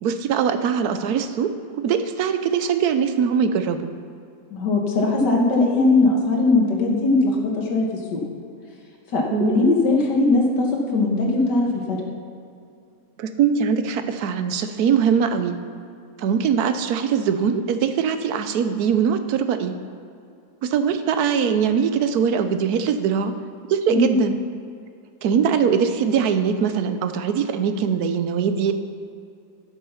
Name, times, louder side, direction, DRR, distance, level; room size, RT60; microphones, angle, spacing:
voice 1, 0.0-3.9 9.3-9.7 13.2-15.6 16.2-19.8 20.6-23.3 23.7-24.3 25.2-28.7, right 7 dB, 70° right, 9 dB, 1.2 m, -22 dB
voice 2, 4.5-8.2 9.1-10.7 10.9-12.0 23.9-24.2, left 2 dB, 90° left, -1 dB, 2.2 m, -20 dB
12.5 x 6.7 x 5.7 m, 2.5 s
omnidirectional pair, 1.8 m